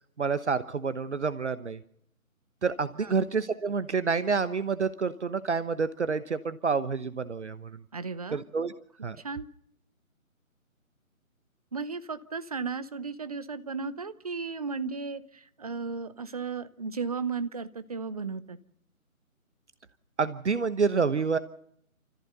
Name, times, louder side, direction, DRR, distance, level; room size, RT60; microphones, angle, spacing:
voice 1, 0.2-1.8 2.6-7.8 8.3-8.7 9.0-9.2 20.2-21.4, right 5 dB, 55° right, 13 dB, 1.1 m, -28 dB
voice 2, 7.9-8.4 9.2-9.5 11.7-18.6, right 5 dB, 25° right, 13 dB, 0.8 m, -35 dB
29.0 x 14.5 x 6.8 m, 0.69 s
figure-of-eight pair, 150°, 42 cm